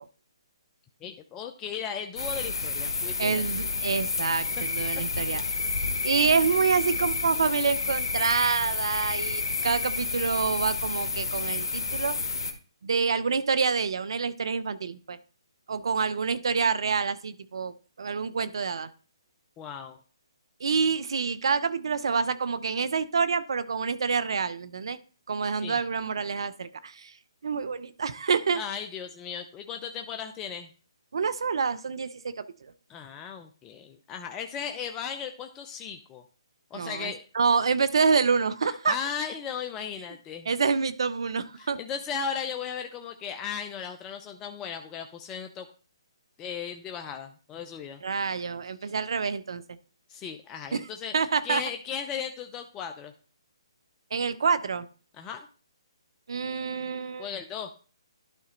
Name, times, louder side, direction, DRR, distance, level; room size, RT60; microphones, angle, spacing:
voice 1, 1.0-3.4 4.6-4.7 5.3-5.4 19.6-20.0 25.6-25.8 28.5-30.7 32.9-36.2 36.7-37.2 38.9-40.5 41.6-45.7 46.4-48.0 48.8-48.9 50.1-53.1 55.1-55.5 57.2-57.7, left 7 dB, 15° left, 5 dB, 0.6 m, -36 dB
sound 1, 2.2-12.5, left 4 dB, 70° left, 1.4 m, -30 dB
voice 2, 3.2-5.4 6.0-12.2 12.8-15.2 15.7-18.9 20.6-25.0 25.3-27.1 27.4-28.6 31.1-32.7 36.7-39.0 40.5-41.8 48.0-49.6 50.7-50.9 51.1-51.6 54.1-54.9 56.3-57.3, right 5 dB, 65° right, 15 dB, 0.7 m, -27 dB
11.5 x 4.2 x 3.9 m, 0.37 s
figure-of-eight pair, 140°, 3 cm